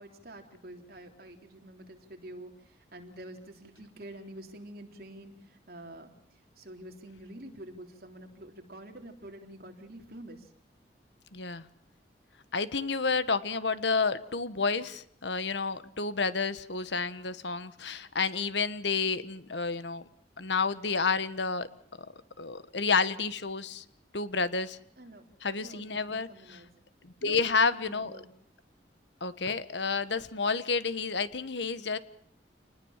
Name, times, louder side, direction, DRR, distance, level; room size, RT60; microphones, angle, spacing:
voice 1, 0.0-6.1 6.6-10.5 25.0-25.3 25.6-26.7 27.2-28.3, right 1 dB, 55° right, 3 dB, 3.8 m, -47 dB
voice 2, 11.3-11.6 12.5-20.0 20.4-21.7 22.4-23.8 24.1-24.8 25.4-26.6 27.0-28.1 29.2-32.0, left 4 dB, 75° left, 13 dB, 1.4 m, -30 dB
28.0 x 20.5 x 7.4 m, 0.63 s
head